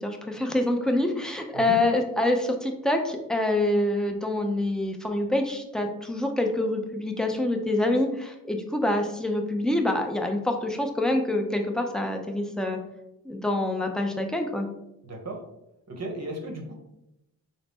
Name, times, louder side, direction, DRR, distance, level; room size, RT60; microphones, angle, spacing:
voice 1, 0.0-12.8 13.2-14.7, left 1 dB, ahead, 3 dB, 0.6 m, -26 dB
voice 2, 15.0-15.4 15.9-16.7, right 1 dB, 40° right, 2 dB, 0.9 m, -35 dB
3.7 x 2.0 x 3.6 m, 0.85 s
hypercardioid pair, 40°, 42 cm